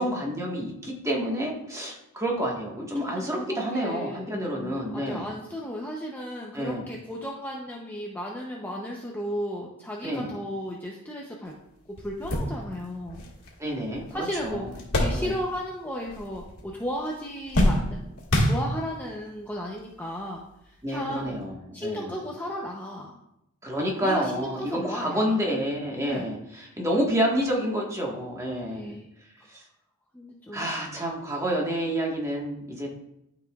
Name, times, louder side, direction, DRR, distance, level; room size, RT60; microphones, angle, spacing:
voice 1, 0.0-5.3 6.5-6.9 10.0-10.3 13.6-14.7 15.1-15.3 20.8-21.5 21.8-22.2 23.6-28.9 29.5-29.6 30.5-32.9, equal, 15° right, -2 dB, 1.4 m, -29 dB
voice 2, 3.0-11.5 12.0-13.3 14.1-21.4 21.7-23.2 24.0-25.4 26.0-26.3 26.7-26.8 28.7-29.1 30.1-30.7, equal, 10° left, -2 dB, 0.6 m, -35 dB
sound 1, 11.5-11.6 12.0-15.8 16.0-16.7 17.0-19.1 19.9-20.0 21.3-21.4, equal, 75° left, 1.8 m, -27 dB
12.0 x 4.9 x 2.4 m, 0.82 s
head